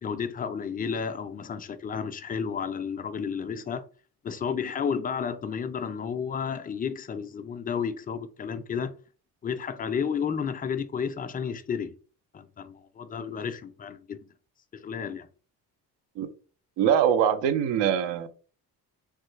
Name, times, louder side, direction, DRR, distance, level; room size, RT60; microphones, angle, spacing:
voice 1, 0.0-3.8 4.2-8.9 9.4-12.0 12.3-14.2 14.7-15.3, left 6 dB, 25° left, 0.3 m, -32 dB
voice 2, 16.8-18.3, right 9 dB, 85° right, 0.6 m, -23 dB
3.2 x 2.2 x 3.1 m
cardioid pair, 70°, 42 cm